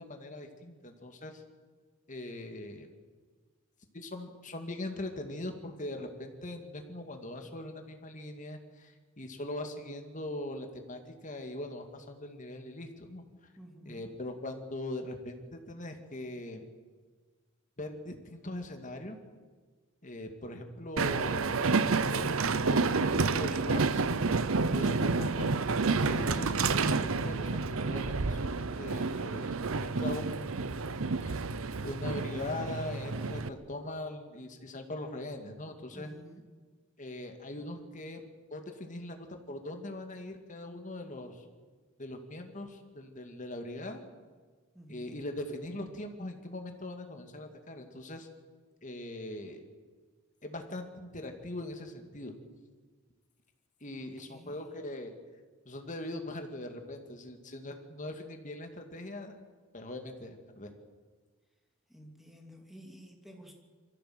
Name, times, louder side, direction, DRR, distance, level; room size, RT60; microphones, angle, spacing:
voice 1, 0.0-1.4 2.1-2.9 3.9-13.2 13.8-16.7 17.8-19.2 20.0-24.0 24.7-25.5 26.0-31.4 31.8-36.1 37.0-41.4 42.0-44.0 44.9-48.3 48.8-49.6 50.4-52.3 53.8-55.1 55.7-59.3 59.7-60.7, left 1 dB, 35° left, 5 dB, 2.3 m, -41 dB
voice 2, 13.6-14.1 35.9-36.5 44.7-45.1 53.9-54.6 61.9-63.5, equal, ahead, 2 dB, 2.8 m, -52 dB
Train, 21.0-33.5, right 4 dB, 80° right, 0.8 m, -29 dB
23.5 x 15.0 x 7.9 m, 1.5 s
head